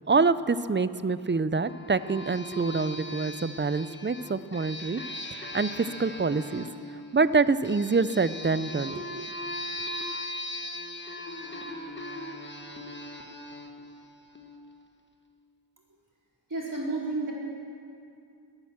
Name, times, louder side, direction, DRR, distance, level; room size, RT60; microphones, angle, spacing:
voice 1, 0.1-5.0 5.3-6.6 7.1-9.3, right 4 dB, 30° right, 15 dB, 0.5 m, -26 dB
sound 1, 1.6-14.8, left 1 dB, 25° left, 1.3 m, -39 dB
voice 2, 16.5-17.3, right 2 dB, 50° right, -5 dB, 4.2 m, -31 dB
22.0 x 9.0 x 7.3 m, 2.5 s
wide cardioid pair, 55°, 41 cm